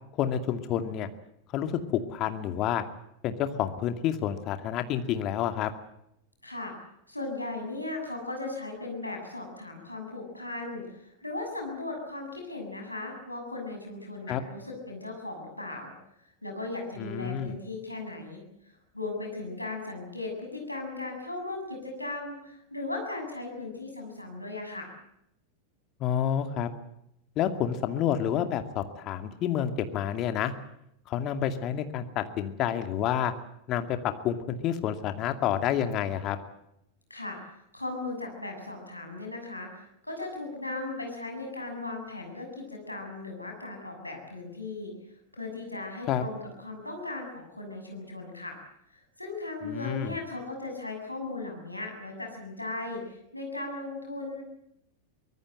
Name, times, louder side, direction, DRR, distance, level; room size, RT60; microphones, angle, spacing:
voice 1, 0.1-1.1 1.5-2.8 3.2-5.7 14.3-14.4 17.0-17.6 26.0-26.7 27.4-30.5 31.1-33.3 33.7-36.4 46.1-46.2 49.6-50.2, left 10 dB, 35° left, 8 dB, 2.3 m, -29 dB
voice 2, 6.4-6.7 7.1-15.9 16.4-24.9 37.1-37.4 37.7-44.9 45.3-48.6 48.9-54.4, left 2 dB, 85° left, 2 dB, 7.5 m, -37 dB
24.5 x 19.5 x 7.8 m, 0.80 s
figure-of-eight pair, 90°, 0 cm